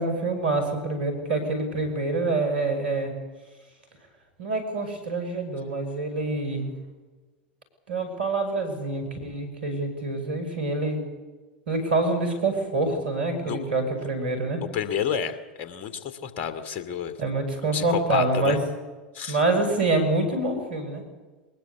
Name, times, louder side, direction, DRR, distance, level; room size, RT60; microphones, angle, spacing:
voice 1, 0.0-3.1 4.4-6.7 7.9-11.0 11.7-14.6 17.2-18.6 19.3-21.0, right 2 dB, 80° right, 6 dB, 5.9 m, -26 dB
voice 2, 14.6-17.2 17.7-18.6 19.1-19.4, left 8 dB, 45° left, 10 dB, 2.4 m, -30 dB
22.0 x 20.5 x 8.3 m, 1.3 s
figure-of-eight pair, 80°, 5 cm